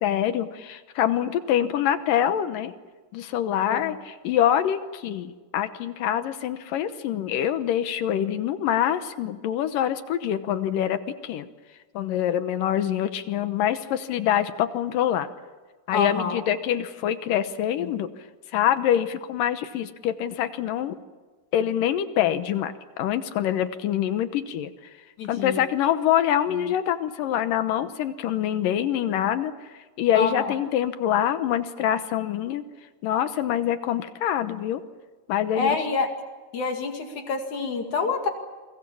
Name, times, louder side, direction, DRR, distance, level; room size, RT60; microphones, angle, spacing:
voice 1, 0.0-2.7 3.1-11.5 11.9-15.3 15.9-18.1 18.5-21.0 21.5-24.7 25.3-29.5 30.0-32.6 33.0-34.8 35.3-35.8, left 10 dB, 80° left, 10 dB, 2.7 m, -25 dB
voice 2, 15.9-16.4 25.2-25.7 30.1-30.5 35.6-36.1 36.5-38.3, left 4 dB, 60° left, 4 dB, 3.4 m, -27 dB
29.0 x 22.5 x 7.2 m, 1.3 s
omnidirectional pair, 3.9 m